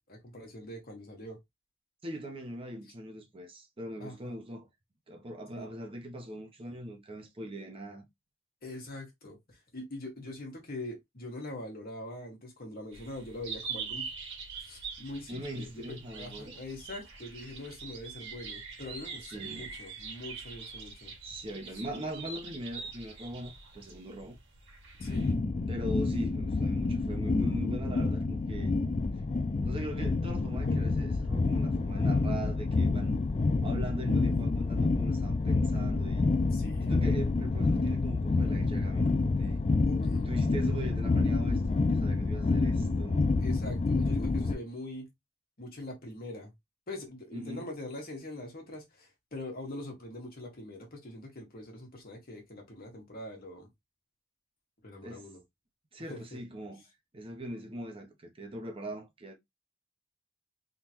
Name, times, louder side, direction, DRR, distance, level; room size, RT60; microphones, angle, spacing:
voice 1, 0.1-1.4 4.0-4.4 5.5-5.7 8.6-14.1 14.6-21.1 25.0-25.3 36.5-36.9 39.8-40.3 43.4-45.1 45.6-46.5 46.9-53.7 54.8-55.4 56.1-56.2, left 1 dB, 45° left, 1.6 m, -43 dB
voice 2, 2.0-4.7 5.1-8.0 15.3-16.6 19.3-19.7 21.2-24.4 25.7-28.7 29.6-33.2 33.6-36.3 36.8-39.6 40.3-43.3 47.3-47.7 55.0-55.3 55.9-56.8 57.1-59.4, right 1 dB, 25° right, 0.7 m, -41 dB
sound 1, 12.9-25.3, right 5 dB, 60° right, 1.8 m, -44 dB
sound 2, 25.0-44.5, left 3 dB, 30° left, 0.3 m, -28 dB
3.6 x 3.1 x 2.9 m
head